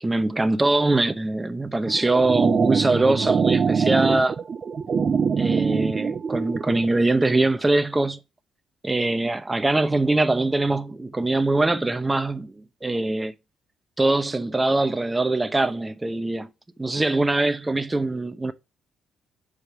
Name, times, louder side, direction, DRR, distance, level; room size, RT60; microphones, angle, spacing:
voice 1, 0.0-4.4 5.4-8.2 8.8-13.3 14.0-16.5 16.8-18.5, right 2 dB, 15° right, 0.8 m, -22 dB
sound 1, 1.9-6.9, right 6 dB, 45° right, 0.4 m, -23 dB
5.1 x 5.0 x 5.7 m
cardioid pair, 90°, 0 cm